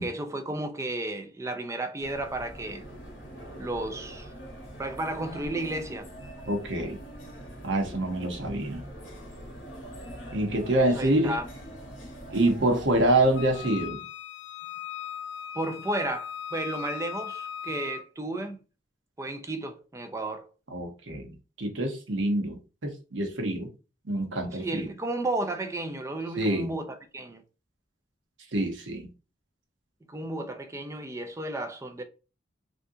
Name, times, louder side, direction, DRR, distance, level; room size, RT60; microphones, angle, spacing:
voice 1, 0.0-2.8 3.6-4.3 4.8-6.1 10.7-11.5 15.5-18.6 19.2-20.5 24.6-27.4 30.1-32.0, right 1 dB, 15° right, 0.4 m, -33 dB
sound 1, 2.0-13.7, right 1 dB, 90° left, 1.2 m, -43 dB
voice 2, 6.5-7.0 7.6-8.8 10.3-11.3 12.3-14.0 20.7-23.7 24.0-24.9 26.4-26.7 28.5-29.1, right 1 dB, 75° right, 0.9 m, -26 dB
Wind instrument woodwind instrument, 13.3-18.1, left 9 dB, 70° left, 0.4 m, -38 dB
3.5 x 2.6 x 2.7 m
head